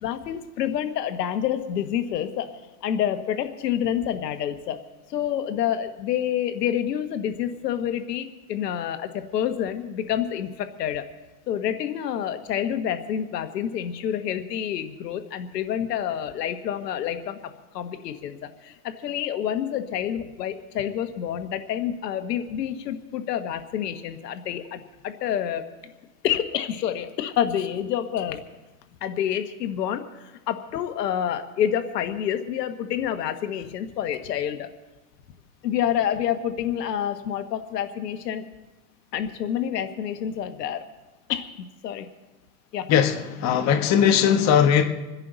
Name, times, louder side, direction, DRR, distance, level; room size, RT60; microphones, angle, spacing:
voice 1, 0.0-2.5 2.8-4.8 5.1-11.0 11.5-25.9 26.2-28.4 29.0-34.7 35.6-38.5 39.1-40.8 41.3-42.1 42.7-42.9, left 9 dB, 80° left, 1.4 m, -28 dB
voice 2, 42.9-44.8, left 8 dB, 35° left, 1.3 m, -19 dB
27.0 x 10.5 x 4.0 m
supercardioid pair, 130°, 47 cm